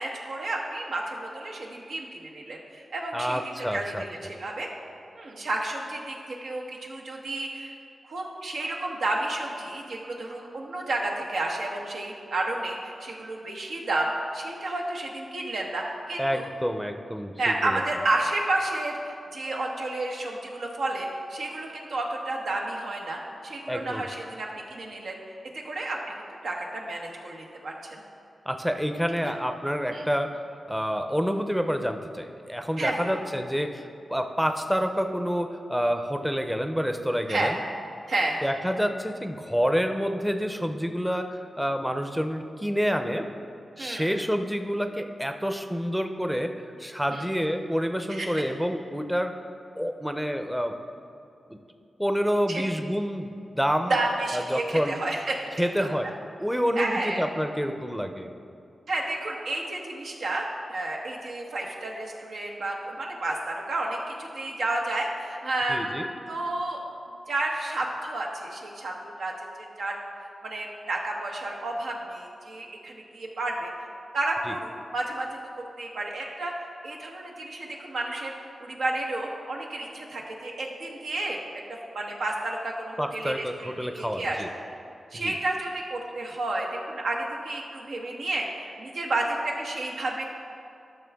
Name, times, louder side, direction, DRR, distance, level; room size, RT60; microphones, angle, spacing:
voice 1, 0.0-4.7 5.2-7.7 8.0-16.5 17.4-25.2 25.5-26.1 26.4-28.0 29.2-29.3 29.9-30.1 32.8-33.2 37.3-37.5 38.1-38.4 43.8-44.1 47.1-47.3 48.1-48.3 52.5-52.6 53.9-55.9 56.8-57.2 58.9-66.8 67.3-68.9 69.2-69.3 69.6-70.0 70.4-73.7 74.1-75.3 75.6-76.5 76.8-81.4 81.9-84.4 85.1-90.2, right 2 dB, 90° right, -1 dB, 1.1 m, -31 dB
voice 2, 3.1-4.0 16.2-17.8 23.7-24.0 28.5-33.8 34.1-37.6 38.4-43.3 43.8-49.3 49.8-50.8 51.5-51.6 52.0-53.3 53.5-53.9 54.3-55.0 55.6-56.1 56.4-58.3 65.7-66.1 74.5-74.6 83.0-84.5 85.1-85.4, equal, 5° right, 6 dB, 0.5 m, -28 dB
12.5 x 6.0 x 3.5 m, 2.6 s
cardioid pair, 70°, 0 cm